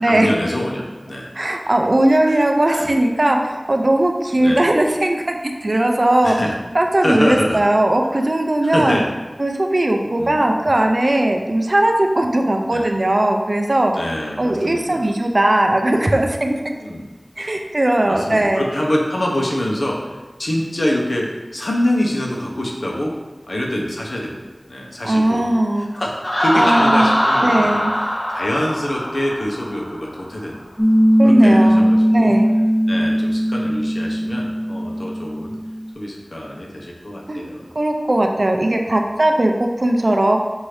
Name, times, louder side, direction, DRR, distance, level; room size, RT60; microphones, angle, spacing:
voice 1, 0.0-1.3 2.3-2.4 2.7-2.9 4.4-4.7 6.2-6.5 7.0-7.6 8.6-9.1 10.2-10.5 12.7-12.9 13.9-15.0 16.8-17.0 18.0-21.3 21.5-23.1 23.5-24.4 24.7-25.4 25.8-27.9 28.3-30.6 31.2-32.4 32.9-35.5 35.9-37.7, left 1 dB, 80° left, -2 dB, 0.8 m, -25 dB
voice 2, 1.3-6.4 6.7-9.0 9.4-13.9 14.4-16.7 17.4-18.6 25.0-25.9 26.5-27.2 27.4-27.9 31.2-31.9 32.1-32.5 37.3-37.4 37.8-40.4, right 1 dB, 65° right, 3 dB, 0.5 m, -18 dB
Laughter, 26.2-29.9, equal, 50° left, 0.9 m, -21 dB
Piano, 30.8-35.9, equal, 5° left, 0.4 m, -17 dB
5.9 x 2.7 x 3.2 m, 1.2 s
wide cardioid pair, 40°, 0 cm